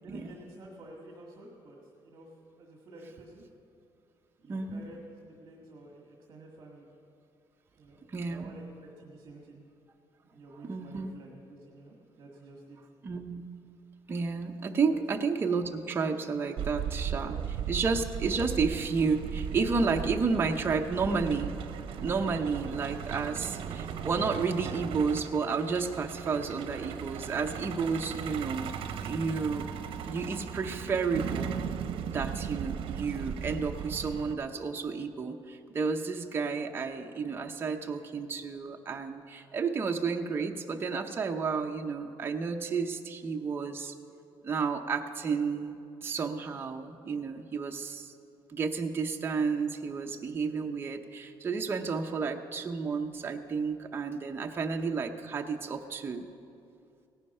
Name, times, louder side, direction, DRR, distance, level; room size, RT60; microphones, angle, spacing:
voice 1, 0.0-2.3 2.6-3.4 4.4-6.9 7.8-8.0 8.3-9.6 10.2-12.8 14.9-15.0 17.2-17.4, right 2 dB, 45° right, -1 dB, 1.7 m, -50 dB
voice 2, 4.5-4.8 8.1-8.5 10.7-11.1 13.0-13.5 14.1-17.4 17.7-21.5 22.0-28.7 29.0-29.7 30.1-31.5 32.0-43.9 44.4-48.1 48.5-56.3, right 5 dB, 25° right, 3 dB, 0.6 m, -31 dB
Truck, 16.6-34.3, right 8 dB, 75° right, 0.7 m, -37 dB
17.5 x 10.5 x 5.5 m, 2.6 s
cardioid pair, 165°, 9 cm